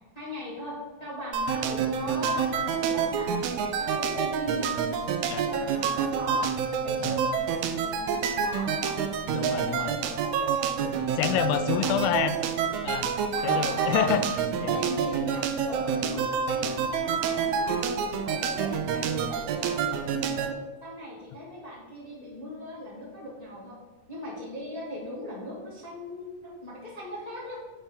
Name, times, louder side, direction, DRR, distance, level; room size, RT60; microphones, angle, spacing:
voice 1, 0.1-3.3 3.8-4.7 5.4-6.5 6.8-9.0 9.3-11.2 11.6-12.4 13.3-14.2 14.7-20.5 20.8-23.8 24.1-27.6, equal, 55° left, -6 dB, 0.4 m, -39 dB
sound 1, 1.3-20.5, right 6 dB, 85° right, 1.7 m, -28 dB
voice 2, 9.3-10.0 10.9-12.4 12.8-13.1 13.4-14.8, left 11 dB, 90° left, 12 dB, 2.3 m, -28 dB
10.0 x 5.7 x 3.5 m, 1.3 s
omnidirectional pair, 4.0 m